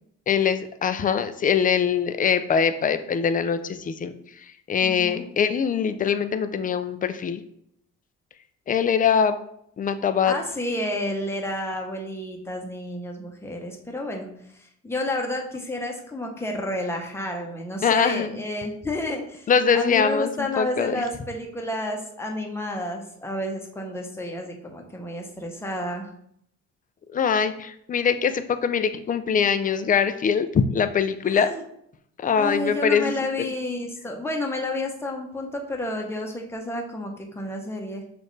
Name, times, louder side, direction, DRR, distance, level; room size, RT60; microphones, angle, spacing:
voice 1, 0.3-7.4 8.7-9.4 9.8-10.3 17.8-18.4 19.5-21.0 27.1-31.5 32.2-33.1 33.4-33.5, left 7 dB, 30° left, 10 dB, 0.4 m, -23 dB
voice 2, 4.8-5.2 10.3-14.3 14.8-26.1 31.3-31.6 32.4-38.0, left 1 dB, 10° left, 1 dB, 0.9 m, -30 dB
6.2 x 2.6 x 3.2 m, 0.72 s
cardioid pair, 90°, 30 cm